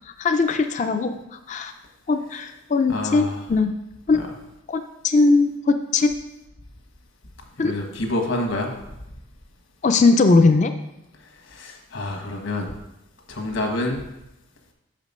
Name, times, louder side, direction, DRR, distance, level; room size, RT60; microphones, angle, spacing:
voice 1, 0.2-1.2 1.5-1.7 2.1-3.2 3.5-3.7 4.1-4.2 4.7-6.1 7.6-7.7 9.8-10.7, left 3 dB, 35° left, 7 dB, 0.3 m, -19 dB
voice 2, 2.9-3.5 4.1-4.3 7.6-8.8 11.4-12.7 13.3-14.0, left 1 dB, 75° left, 2 dB, 1.3 m, -27 dB
6.6 x 5.1 x 5.4 m, 0.90 s
head